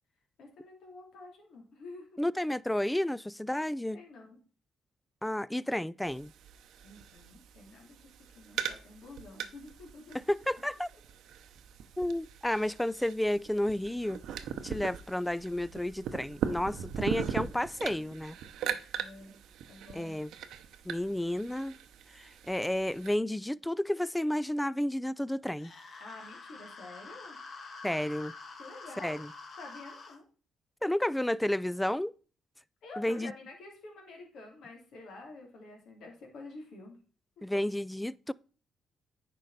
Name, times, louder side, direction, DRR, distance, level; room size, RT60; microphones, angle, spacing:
voice 1, 0.4-2.2 3.9-4.4 6.8-10.2 17.1-18.1 18.9-19.4 19.7-20.2 26.0-27.4 28.6-29.2 29.6-30.2 32.8-37.0 37.4-37.5, left 2 dB, 70° left, 2.9 m, -49 dB
voice 2, 2.2-4.0 5.2-6.3 10.1-10.9 12.0-14.2 14.6-18.4 19.9-20.3 20.9-21.7 22.1-25.7 27.8-28.3 29.0-29.3 30.8-32.1 33.0-33.3 37.4-38.3, left 1 dB, 5° left, 0.3 m, -31 dB
sound 1, 6.0-23.2, right 8 dB, 80° right, 0.7 m, -40 dB
sound 2, 25.6-30.2, left 3 dB, 45° left, 1.6 m, -47 dB
9.1 x 5.2 x 4.1 m
cardioid pair, 90°, 0 cm